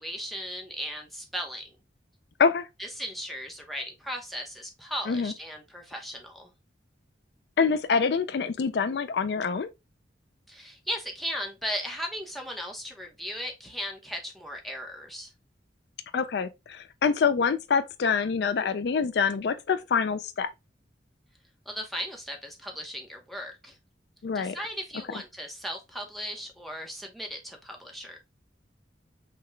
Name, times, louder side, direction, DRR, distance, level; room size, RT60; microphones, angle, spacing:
voice 1, 0.0-1.6 2.8-6.5 10.5-15.3 21.7-23.7 24.3-28.2, equal, ahead, 0.8 m, -37 dB
voice 2, 7.6-9.7 16.1-20.5 24.2-24.6, left 5 dB, 65° left, 0.4 m, -26 dB
5.7 x 2.3 x 3.1 m
head